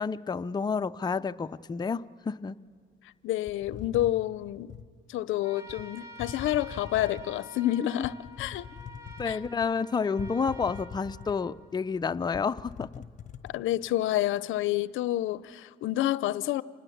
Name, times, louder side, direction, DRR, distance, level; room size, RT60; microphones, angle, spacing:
voice 1, 0.0-2.6 9.2-12.9, left 5 dB, 20° left, 0.5 m, -30 dB
voice 2, 3.2-4.8 5.1-8.7 9.3-9.4 13.4-16.6, left 14 dB, 85° left, 0.5 m, -29 dB
sound 1, 3.5-4.9 5.7-5.8 6.2-7.4 8.0-9.7 10.2-11.6 12.0-12.1 12.3-13.5, left 8 dB, 35° left, 1.3 m, -43 dB
Trumpet, 5.3-11.9, equal, 15° right, 2.9 m, -49 dB
27.0 x 20.0 x 7.1 m
cardioid pair, 90°, 20 cm